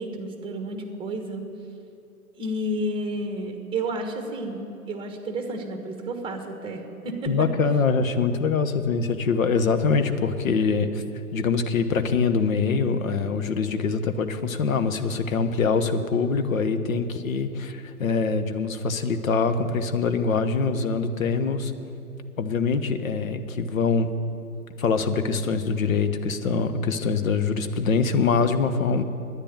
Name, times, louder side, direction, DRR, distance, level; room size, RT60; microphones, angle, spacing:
voice 1, 0.0-1.5 2.4-7.5, right 1 dB, 10° right, 5 dB, 1.3 m, -31 dB
voice 2, 7.3-11.0 11.3-21.7 22.4-24.1 24.8-29.0, left 5 dB, 60° left, 9 dB, 1.1 m, -24 dB
10.0 x 9.8 x 9.3 m, 2.9 s
figure-of-eight pair, 115°, 46 cm